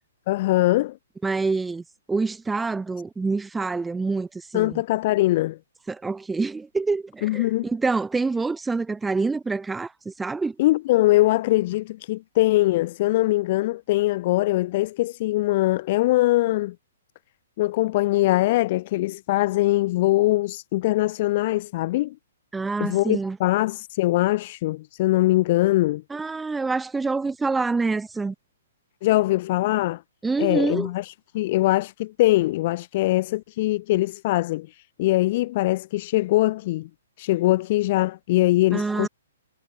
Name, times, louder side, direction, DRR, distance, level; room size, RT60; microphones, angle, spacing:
voice 1, 0.3-1.0 4.5-5.6 7.2-7.7 10.6-16.8 17.6-22.2 22.8-26.0 29.0-30.0 30.4-36.9 37.2-39.1, left 17 dB, 40° left, 0.3 m, -22 dB
voice 2, 1.2-1.8 2.1-4.8 5.9-10.5 22.5-23.4 26.1-28.3 30.2-30.9 38.7-39.1, right 4 dB, 5° right, 1.5 m, -26 dB
figure-of-eight pair, 120°, 0 cm